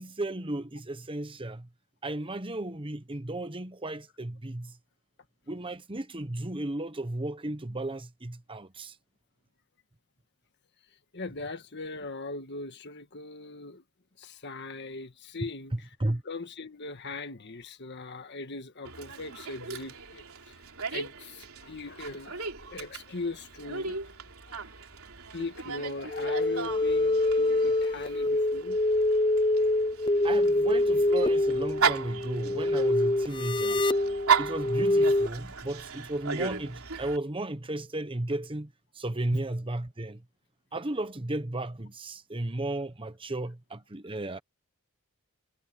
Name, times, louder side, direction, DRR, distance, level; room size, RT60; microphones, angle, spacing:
voice 1, 0.0-1.7 2.0-4.8 5.5-8.9 15.7-16.2 30.2-33.9 34.4-40.2 40.7-44.4, right 1 dB, 25° right, 1.1 m, -34 dB
voice 2, 11.1-13.8 14.2-15.9 16.2-20.6 20.9-24.1 24.5-24.6 25.3-29.1 39.3-39.4, left 3 dB, 50° left, 1.6 m, -40 dB
Dog, 18.8-37.2, right 6 dB, 80° right, 3.4 m, -35 dB
sound 1, 26.1-35.3, left 1 dB, 20° left, 0.6 m, -25 dB
head